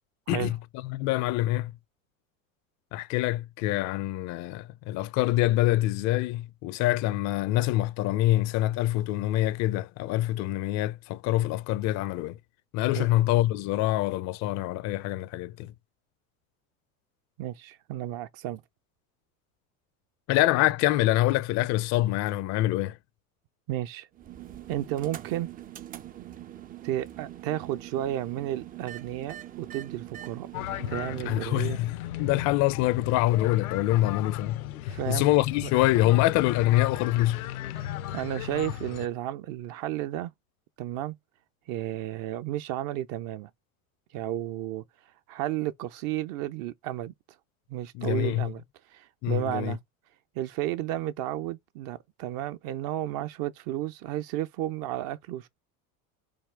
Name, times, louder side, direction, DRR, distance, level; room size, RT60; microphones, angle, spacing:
voice 1, 0.8-1.7 2.9-12.4 12.7-15.7 20.3-23.0 31.3-37.4 47.9-48.5 49.2-49.8, left 16 dB, 45° left, 0.4 m, -25 dB
voice 2, 17.4-18.6 23.7-24.1 24.7-25.5 26.8-30.5 30.9-31.8 34.9-35.3 35.6-35.7 37.8-40.3 40.8-41.2 41.7-43.5 44.1-44.8 45.3-47.1 47.7-48.6 48.9-49.8 50.3-55.5, right 13 dB, 55° right, 0.7 m, -32 dB
sound 1, 24.1-31.5, right 12 dB, 25° right, 0.3 m, -43 dB
sound 2, 30.5-39.1, left 12 dB, 85° left, 0.7 m, -36 dB
4.3 x 3.5 x 3.3 m
hypercardioid pair, 90°, 42 cm